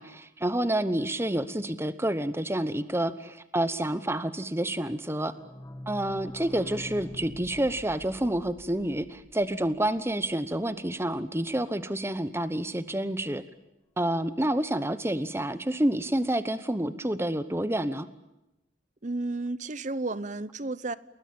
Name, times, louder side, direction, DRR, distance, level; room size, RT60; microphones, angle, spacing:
voice 1, 0.0-5.3 5.9-13.4 14.0-18.1, right 1 dB, 15° right, 13 dB, 1.0 m, -28 dB
sound 1, 5.0-10.5 10.8-10.9 11.1-11.2 11.5-11.6, left 1 dB, 20° left, 1.6 m, -45 dB
voice 2, 19.0-21.0, right 2 dB, 40° right, 17 dB, 0.9 m, -32 dB
29.5 x 21.0 x 8.8 m, 0.93 s
head